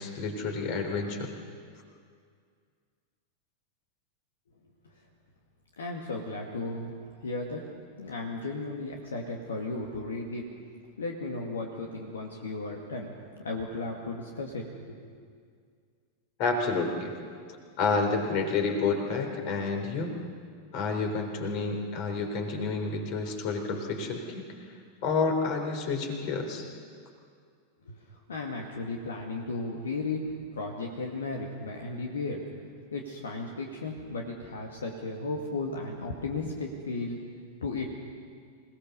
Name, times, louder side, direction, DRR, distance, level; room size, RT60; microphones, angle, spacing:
voice 1, 0.0-1.4 16.4-17.1 17.8-20.1 20.7-24.4 25.0-26.7, left 4 dB, 45° left, 4 dB, 3.9 m, -29 dB
voice 2, 5.8-7.7 8.0-10.5 11.0-13.1 13.4-15.1 27.9-32.4 32.9-37.2 37.6-38.0, left 3 dB, 70° left, 1 dB, 2.2 m, -35 dB
27.0 x 18.5 x 6.9 m, 2.1 s
figure-of-eight pair, 90°, 0 cm